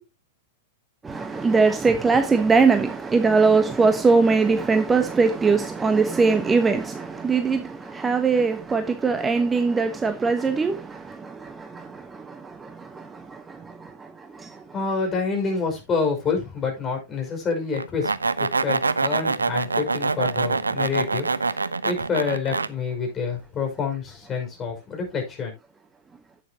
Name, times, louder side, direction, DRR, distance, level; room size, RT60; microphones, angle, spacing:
voice 1, 1.0-14.6, right 4 dB, 15° right, 1.2 m, -22 dB
voice 2, 14.7-18.1 18.4-21.6 21.8-25.5, left 5 dB, 25° left, 5.7 m, -27 dB
sound 1, 17.7-22.7, right 4 dB, 85° right, 0.6 m, -25 dB
11.0 x 9.4 x 2.9 m
figure-of-eight pair, 100°, 0 cm